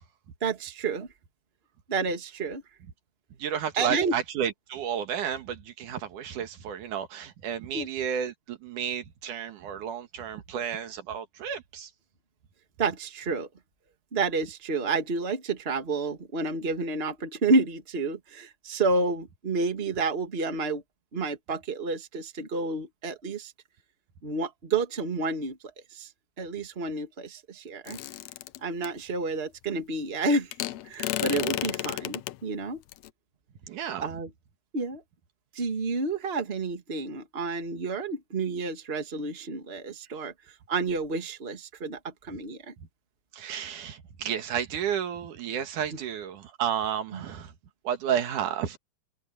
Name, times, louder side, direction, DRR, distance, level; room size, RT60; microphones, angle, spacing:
voice 1, 0.4-1.1 1.9-2.6 3.8-4.2 7.7-7.9 12.8-13.5 14.1-20.8 21.1-23.5 24.2-25.6 25.9-26.1 26.4-28.0 28.6-30.5 30.8-32.8 34.0-34.3 34.7-35.0 35.5-40.3 40.7-42.7 45.9-46.0 47.1-47.2, right 3 dB, 20° right, 1.9 m, -30 dB
voice 2, 3.4-11.9 33.7-34.1 43.3-47.5 47.8-48.8, right 9 dB, 80° right, 3.0 m, -32 dB
sound 1, 27.9-28.9 30.5-32.4 32.9-33.1, left 15 dB, 75° left, 1.7 m, -32 dB
omnidirectional pair, 3.6 m